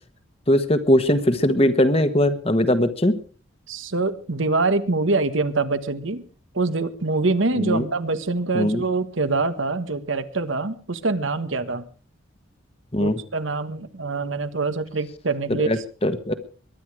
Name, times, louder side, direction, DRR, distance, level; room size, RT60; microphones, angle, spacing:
voice 1, 0.5-3.2 7.6-7.8 8.5-8.8 12.9-13.1 15.7-16.3, left 1 dB, 30° left, 10 dB, 1.4 m, -20 dB
voice 2, 3.7-6.2 6.5-11.8 13.0-15.8, right 3 dB, 75° right, 11 dB, 1.4 m, -24 dB
22.0 x 10.5 x 4.8 m, 0.39 s
head